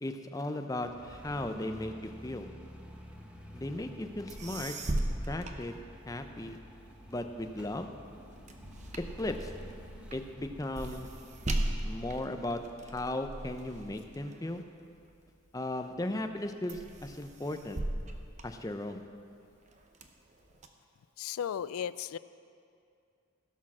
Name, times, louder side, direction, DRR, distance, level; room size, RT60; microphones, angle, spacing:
voice 1, 0.0-2.5 3.5-4.7 5.3-5.8 6.1-6.6 7.1-7.9 9.0-9.5 10.1-11.1 11.8-14.6 15.5-17.8 18.4-19.1, left 1 dB, 15° left, 6 dB, 0.5 m, -36 dB
sound 1, 0.7-12.5, equal, 5° right, 0.9 m, -50 dB
sound 2, 4.0-4.1 4.3-6.4 6.9-15.5 16.0-16.4 16.7-19.2 19.7-20.7, right 1 dB, 35° right, 0.7 m, -38 dB
voice 2, 8.3-9.0 9.8-10.1 21.2-22.2, left 8 dB, 85° left, 17 dB, 0.3 m, -38 dB
16.0 x 6.3 x 6.1 m, 2.5 s
head